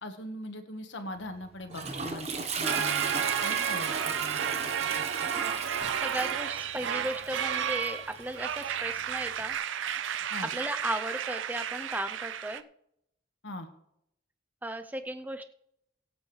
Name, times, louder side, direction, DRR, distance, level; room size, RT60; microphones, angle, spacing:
voice 1, 0.0-2.3 2.6-5.1 10.3-10.5 13.4-13.7, left 1 dB, 75° left, 7 dB, 1.5 m, -41 dB
Toilet flush, 1.2-9.5, right 5 dB, 35° right, 1.2 m, -37 dB
sound 1, 2.6-12.6, right 9 dB, 85° right, 0.5 m, -32 dB
voice 2, 6.0-9.6 10.5-12.6 14.6-15.5, right 1 dB, 10° right, 8 dB, 0.6 m, -35 dB
23.5 x 8.0 x 3.3 m, 0.78 s
head